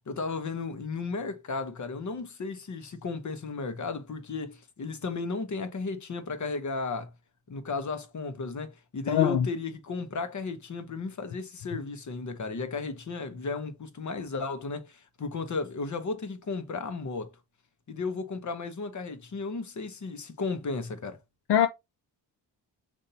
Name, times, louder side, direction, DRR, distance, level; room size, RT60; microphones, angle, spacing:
voice 1, 0.1-7.1 7.5-17.3 17.9-21.2, left 4 dB, 40° left, 0.9 m, -34 dB
voice 2, 9.1-9.5 21.5-21.7, left 10 dB, 65° left, 0.6 m, -22 dB
6.8 x 2.6 x 2.7 m
wide cardioid pair, 110°, 43 cm